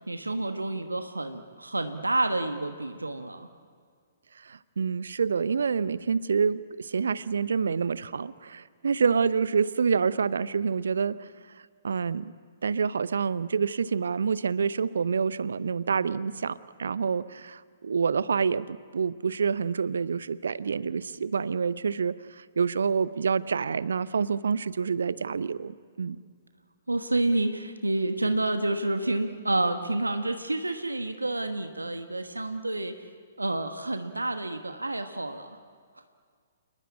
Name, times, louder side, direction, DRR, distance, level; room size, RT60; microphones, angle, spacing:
voice 1, 0.1-3.5 26.9-33.0 33.4-35.6, right 2 dB, 80° right, 8 dB, 1.3 m, -29 dB
voice 2, 4.4-11.3 11.8-12.3 12.6-26.2, right 6 dB, 65° right, 18 dB, 0.7 m, -27 dB
28.0 x 20.0 x 8.5 m, 2.1 s
figure-of-eight pair, 120°, 0 cm